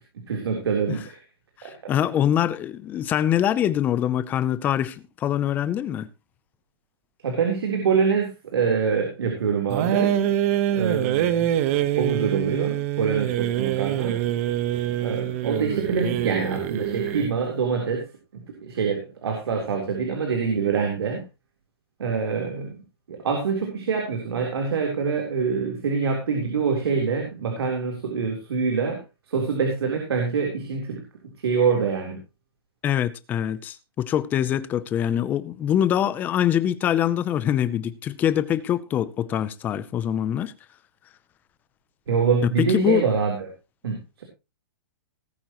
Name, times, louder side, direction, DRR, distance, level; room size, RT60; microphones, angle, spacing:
voice 1, 0.3-1.2 1.6-1.9 7.2-10.1 10.7-11.5 12.0-14.2 15.0-18.1 18.3-21.2 22.0-22.8 23.1-29.0 29.3-31.0 31.4-32.2 42.1-43.5 43.8-44.2, right 5 dB, 90° right, 3.8 m, -25 dB
voice 2, 1.9-6.1 32.8-40.5 42.6-43.0, left 10 dB, 15° left, 0.6 m, -24 dB
sound 1, 9.7-17.4, right 11 dB, 35° right, 1.2 m, -25 dB
19.0 x 9.0 x 3.1 m
hypercardioid pair, 170°, 13 cm